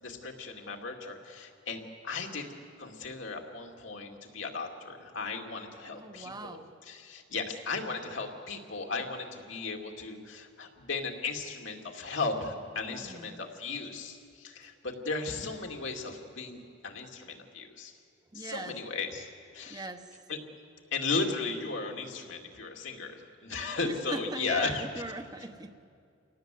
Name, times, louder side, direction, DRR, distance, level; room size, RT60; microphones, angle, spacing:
voice 1, 0.0-2.5 2.8-6.6 6.9-18.0 18.3-19.9 20.3-20.4 20.9-24.8, left 4 dB, 70° left, 2 dB, 2.6 m, -36 dB
voice 2, 5.9-6.7 12.9-13.4 18.3-18.8 19.7-20.2 23.8-25.7, right 2 dB, 20° right, 7 dB, 1.0 m, -40 dB
28.5 x 18.5 x 7.8 m, 2.3 s
head